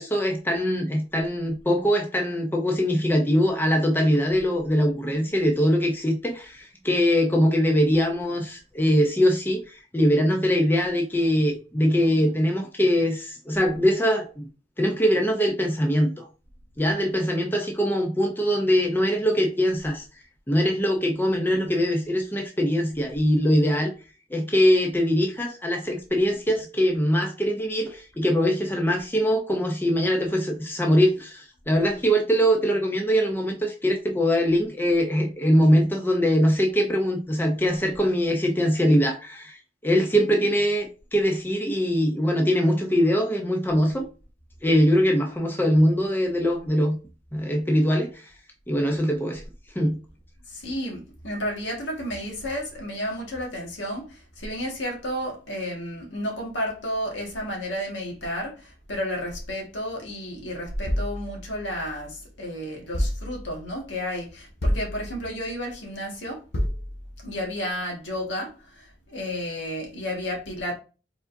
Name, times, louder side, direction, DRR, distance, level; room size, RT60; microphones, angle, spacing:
voice 1, 0.0-14.5 14.8-16.3 16.8-20.0 20.5-23.9 24.3-39.6 39.8-44.1 44.6-47.0 47.3-48.2 48.7-49.4 49.8-50.0, equal, 10° left, 0.6 m, -22 dB
voice 2, 50.5-66.5 67.2-70.7, equal, 80° left, 1.7 m, -32 dB
sound 1, 60.9-62.3 62.9-63.8 64.6-65.5 66.5-67.3, equal, 60° left, 1.1 m, -29 dB
4.7 x 3.8 x 2.6 m
head